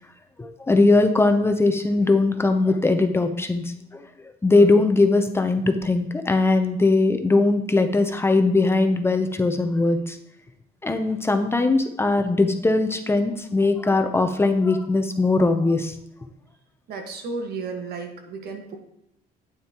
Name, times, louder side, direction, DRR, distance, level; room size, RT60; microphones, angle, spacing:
voice 1, 0.4-4.1 4.4-10.2 10.8-16.0, left 3 dB, 15° left, 6 dB, 0.6 m, -20 dB
voice 2, 16.9-18.8, right 4 dB, 70° right, 4 dB, 1.5 m, -33 dB
9.1 x 8.9 x 3.0 m, 0.79 s
cardioid pair, 110°, 17 cm